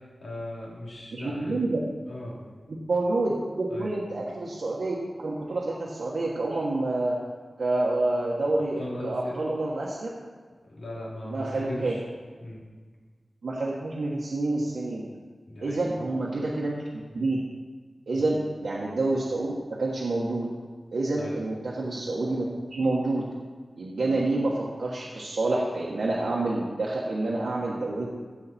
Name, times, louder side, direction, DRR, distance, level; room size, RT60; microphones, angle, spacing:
voice 1, 0.2-1.6 2.1-2.6 3.7-3.9 8.8-9.4 10.6-12.0 12.4-12.6 15.5-15.8 18.1-18.3 21.2-21.4, left 1 dB, 85° left, -5 dB, 3.2 m, -38 dB
voice 2, 1.1-1.8 2.7-7.1 7.6-10.1 11.3-12.0 13.4-15.0 15.6-17.4 18.1-20.5 20.9-23.2 23.8-28.1, right 2 dB, 85° right, -5 dB, 1.5 m, -28 dB
16.0 x 5.7 x 4.4 m, 1.5 s
wide cardioid pair, 90°, 0 cm